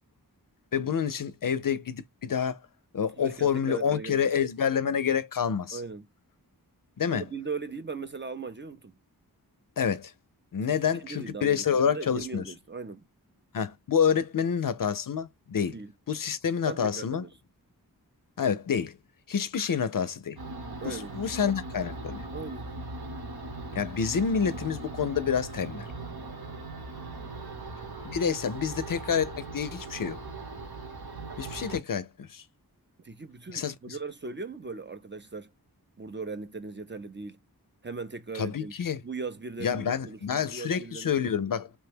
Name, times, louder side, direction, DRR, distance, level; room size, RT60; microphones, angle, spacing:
voice 1, 0.7-2.6 2.9-5.8 7.0-7.2 9.8-10.1 10.5-12.5 13.5-15.8 16.1-17.2 18.4-19.0 19.3-20.4 20.8-22.3 23.7-25.9 28.0-30.2 31.4-32.4 33.5-34.0 38.3-39.0 39.6-41.7, left 7 dB, 60° left, 0.5 m, -28 dB
voice 2, 3.2-4.2 5.7-6.1 7.1-8.9 10.6-10.8 11.0-13.0 15.7-15.9 16.7-17.3 20.8-21.1 22.3-22.7 33.0-35.5 36.0-37.4 37.8-38.7 39.0-41.1, right 4 dB, 30° right, 0.5 m, -38 dB
sound 1, 20.4-31.8, right 2 dB, 75° right, 1.2 m, -39 dB
3.1 x 2.1 x 3.3 m
wide cardioid pair, 55°, 38 cm